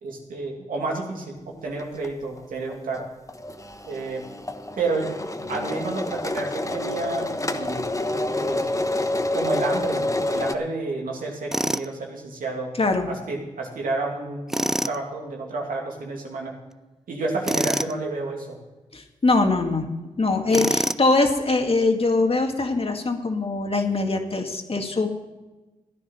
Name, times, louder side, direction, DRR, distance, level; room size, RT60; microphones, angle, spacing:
voice 1, 0.0-3.0 3.9-4.2 4.8-5.1 5.5-8.6 9.3-12.7 13.1-16.5 17.1-18.6 20.5-20.6, right 3 dB, 90° right, -1 dB, 2.7 m, -30 dB
sound 1, 1.8-2.1 2.4-2.5 2.7-10.5, left 1 dB, 25° left, 1.2 m, -28 dB
Tools, 11.5-11.9 14.5-15.0 17.4-17.9 20.5-21.1, equal, 5° right, 0.5 m, -25 dB
voice 2, 12.8-13.1 18.9-19.9 20.2-25.1, left 3 dB, 45° left, 4 dB, 2.0 m, -22 dB
14.5 x 9.9 x 5.7 m, 1.1 s
cardioid pair, 50°, 14 cm